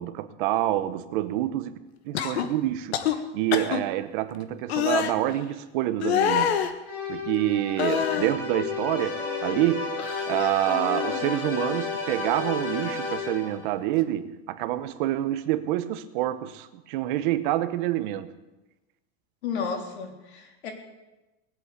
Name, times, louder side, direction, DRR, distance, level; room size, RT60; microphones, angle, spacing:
voice 1, 0.0-1.8 2.0-6.6 7.1-10.0 10.3-18.4, right 14 dB, 50° right, 1.0 m, -27 dB
sound 1, 2.1-2.5 2.9-3.2 3.5-3.8 4.7-5.1 6.0-6.7 7.8-8.4 8.8-9.7 10.0-10.2 10.7-11.5 12.7-12.9, left 8 dB, 75° left, 1.5 m, -27 dB
sound 2, 6.8-13.7, left 5 dB, 30° left, 4.5 m, -32 dB
voice 2, 19.4-20.7, left 6 dB, 90° left, 3.8 m, -33 dB
19.0 x 8.4 x 8.3 m
supercardioid pair, 165°, 32 cm